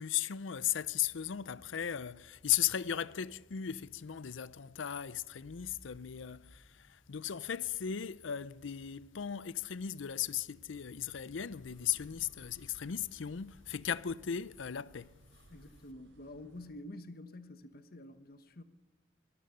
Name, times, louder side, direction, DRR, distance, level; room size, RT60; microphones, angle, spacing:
voice 1, 0.0-15.1, left 10 dB, 75° left, 0.6 m, -36 dB
sound 1, 0.5-14.2, equal, 15° left, 0.9 m, -64 dB
sound 2, 11.5-16.7, equal, 75° right, 3.5 m, -61 dB
voice 2, 15.5-18.6, left 1 dB, 50° left, 1.2 m, -48 dB
23.5 x 17.5 x 6.7 m
head